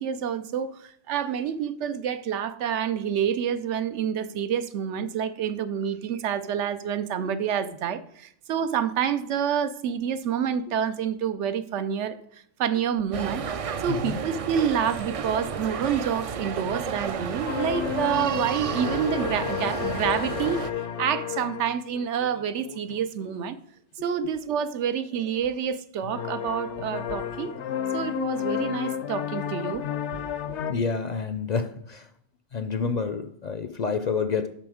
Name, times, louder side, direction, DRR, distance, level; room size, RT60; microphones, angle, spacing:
voice 1, 0.0-13.5 13.8-23.6 24.0-27.5 27.9-29.8 30.1-30.2, right 8 dB, 90° right, 1.0 m, -28 dB
sound 1, 13.1-20.7, right 6 dB, 65° right, 0.3 m, -32 dB
voice 2, 13.9-14.2 24.2-24.3 30.7-32.1 32.5-34.5, left 5 dB, 55° left, 0.5 m, -28 dB
sound 2, 17.5-23.3 26.0-30.7, left 9 dB, 85° left, 0.9 m, -32 dB
7.7 x 6.2 x 4.9 m
omnidirectional pair, 1.2 m